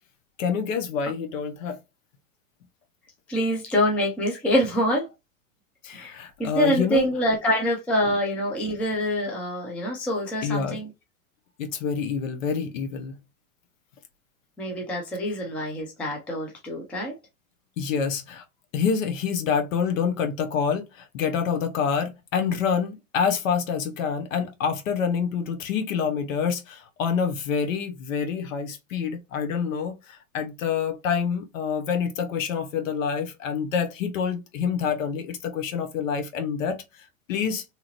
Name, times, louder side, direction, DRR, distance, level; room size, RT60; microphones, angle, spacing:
voice 1, 0.4-1.8 5.8-7.1 10.4-10.8 11.6-13.2 17.8-18.4 18.7-37.6, left 6 dB, 65° left, 0.9 m, -27 dB
voice 2, 3.3-5.1 5.9-6.1 6.4-10.9 14.6-17.1, equal, 5° left, 0.3 m, -25 dB
2.9 x 2.4 x 2.8 m
hypercardioid pair, 115°, 42 cm